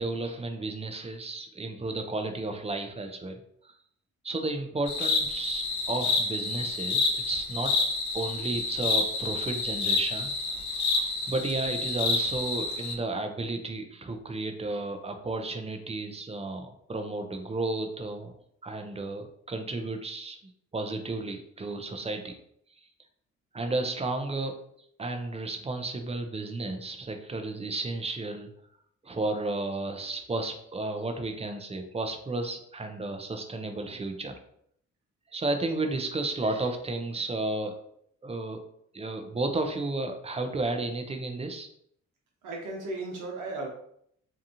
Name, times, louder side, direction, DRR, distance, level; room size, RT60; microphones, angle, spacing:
voice 1, 0.0-3.4 3.6-3.7 4.2-7.7 8.1-10.3 11.3-18.3 18.6-20.4 20.7-22.4 23.5-24.5 25.0-28.5 29.0-34.3 35.3-37.7 38.2-38.6 38.9-41.7, right 2 dB, 20° right, 6 dB, 0.5 m, -32 dB
sound 1, 4.9-12.9, left 3 dB, 70° left, 0.6 m, -29 dB
voice 2, 42.4-43.7, right 2 dB, 85° right, -1 dB, 0.9 m, -35 dB
2.8 x 2.3 x 2.6 m, 0.68 s
supercardioid pair, 65°, 29 cm